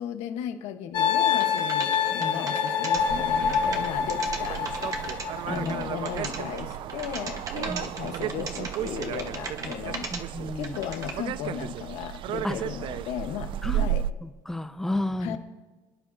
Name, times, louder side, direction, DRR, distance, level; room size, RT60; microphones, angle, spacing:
voice 1, 0.0-4.6 5.5-10.1 10.5-14.0 15.2-15.4, left 9 dB, 75° left, 6 dB, 1.4 m, -35 dB
sound 1, 0.9-6.3, left 7 dB, 40° left, 1.3 m, -26 dB
sound 2, 1.3-3.0 3.4-5.2 5.5-10.2 10.5-11.1, right 4 dB, 30° right, 1.5 m, -37 dB
voice 2, 2.1-2.4 5.5-5.8 7.7-7.8 10.1-10.8 12.4-12.5 13.6-13.9 14.2-15.4, left 1 dB, 5° left, 10 dB, 0.6 m, -32 dB
sound 3, 2.9-14.1, right 11 dB, 50° right, 0.4 m, -34 dB
27.5 x 10.0 x 2.9 m, 1.2 s
cardioid pair, 150°, 11 cm